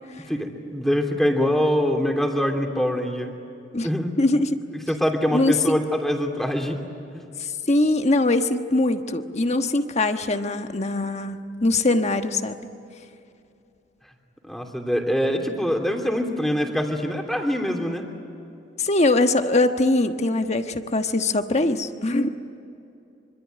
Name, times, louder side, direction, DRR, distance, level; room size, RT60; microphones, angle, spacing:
voice 1, 0.3-3.3 3.8-4.1 4.9-6.8 14.4-18.1, equal, ahead, 2 dB, 3.0 m, -24 dB
voice 2, 4.2-4.6 5.3-5.8 7.4-12.6 18.8-22.3, left 2 dB, 35° left, 7 dB, 1.3 m, -22 dB
25.5 x 25.0 x 9.3 m, 2.7 s
head